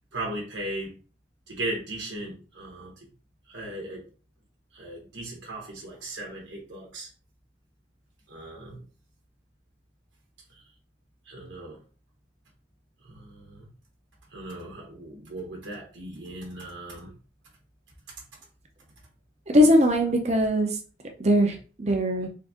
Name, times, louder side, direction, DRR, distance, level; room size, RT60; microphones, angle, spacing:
voice 1, 0.1-1.0 1.5-2.9 3.5-4.0 4.7-7.1 8.3-8.8 11.3-11.8 13.0-13.6 14.3-17.1, right 1 dB, 85° right, -2 dB, 1.1 m, -37 dB
voice 2, 19.5-20.7 21.2-22.3, equal, 35° right, 3 dB, 0.8 m, -21 dB
3.8 x 2.7 x 3.6 m, 0.37 s
head